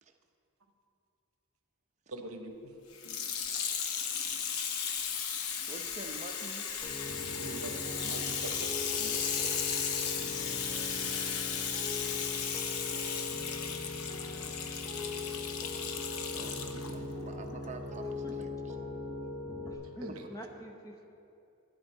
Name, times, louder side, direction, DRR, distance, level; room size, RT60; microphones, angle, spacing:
voice 1, 2.1-2.7 7.2-8.7 9.0-9.7 19.8-20.3, right 2 dB, 70° right, 5 dB, 0.9 m, -44 dB
Water tap faucet / Sink (filling or washing), 2.9-16.9 17.6-17.7, left 7 dB, 80° left, 0.8 m, -35 dB
voice 2, 5.7-6.7 14.3-14.6 16.2-18.8 20.1-20.2, right 2 dB, 30° right, 4 dB, 0.7 m, -47 dB
Piano, 6.8-19.7, left 3 dB, 10° right, 1.3 m, -40 dB
voice 3, 19.6-21.1, equal, 15° left, 3 dB, 0.8 m, -46 dB
11.0 x 9.8 x 4.6 m, 2.8 s
head